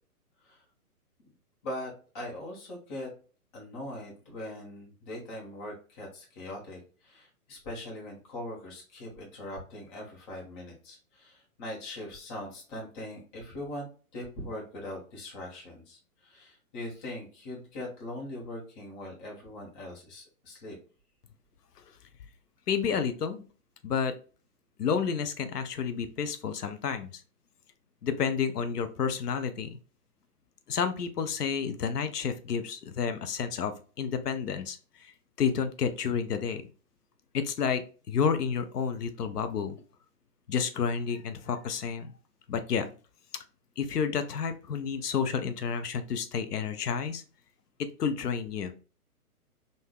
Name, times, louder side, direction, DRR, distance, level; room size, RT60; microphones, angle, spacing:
voice 1, 1.6-3.1 3.5-20.7, left 1 dB, 30° left, -2 dB, 1.3 m, -41 dB
voice 2, 22.7-23.4 23.8-24.1 24.8-27.1 28.0-29.8 30.7-36.6 37.3-39.8 40.5-42.1 42.5-42.9 43.8-47.2 47.8-48.7, left 6 dB, 85° left, 9 dB, 0.7 m, -30 dB
3.6 x 2.6 x 2.3 m, 0.37 s
hypercardioid pair, 135°, 46 cm